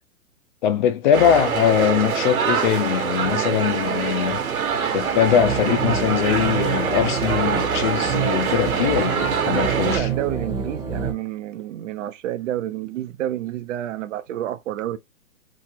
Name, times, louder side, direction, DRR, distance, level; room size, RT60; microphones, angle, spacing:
voice 1, 0.6-4.4 4.9-10.1, left 9 dB, 35° left, 0.5 m, -21 dB
sound 1, 1.1-10.0, right 7 dB, 75° right, 1.1 m, -24 dB
sound 2, 5.3-11.1, right 5 dB, 10° right, 0.9 m, -28 dB
voice 2, 9.5-15.0, right 12 dB, 60° right, 0.6 m, -29 dB
3.1 x 2.1 x 3.5 m
hypercardioid pair, 130°, 42 cm